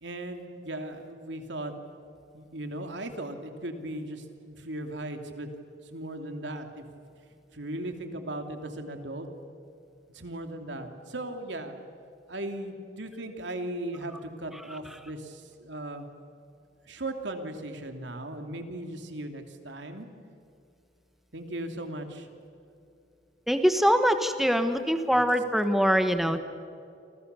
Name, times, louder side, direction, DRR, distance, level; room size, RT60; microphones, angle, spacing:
voice 1, 0.0-1.7 2.3-5.5 5.9-7.0 7.5-9.3 10.1-11.7 12.3-16.1 16.9-20.1 21.3-22.3 25.1-25.2, right 1 dB, 85° right, 5 dB, 2.9 m, -37 dB
voice 2, 23.5-26.4, equal, ahead, 8 dB, 1.2 m, -23 dB
29.0 x 27.5 x 6.9 m, 2.6 s
head